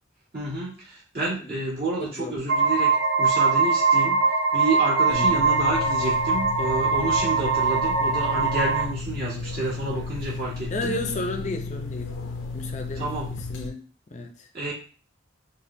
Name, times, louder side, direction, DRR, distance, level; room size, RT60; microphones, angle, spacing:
voice 1, 0.3-4.2 4.5-11.0 13.0-13.3 14.5-14.7, right 2 dB, 50° right, 1.9 m, -29 dB
voice 2, 1.2-1.6 2.0-2.5 5.1-5.5 10.7-12.3 12.5-13.2 13.5-13.8 14.1-14.5, left 2 dB, 35° left, 0.5 m, -33 dB
sound 1, 2.5-8.9, right 4 dB, 85° right, 0.4 m, -22 dB
sound 2, 5.1-13.7, left 3 dB, 85° left, 0.7 m, -34 dB
5.2 x 2.3 x 2.7 m
head